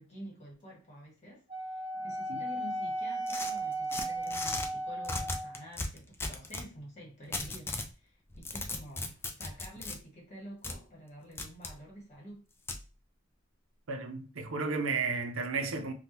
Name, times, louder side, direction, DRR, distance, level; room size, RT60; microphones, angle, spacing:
voice 1, 0.0-12.4, equal, 35° left, 1.4 m, -49 dB
Wind instrument woodwind instrument, 1.5-5.6, right 1 dB, 25° right, 1.1 m, -35 dB
sound 1, 3.3-4.7 5.0-6.7 7.3-7.9 8.3-10.0 10.6-10.8 11.4-11.7 12.7-12.8, left 2 dB, 10° left, 0.3 m, -37 dB
voice 2, 13.9-15.9, right 4 dB, 85° right, 0.6 m, -33 dB
3.5 x 2.2 x 2.8 m
head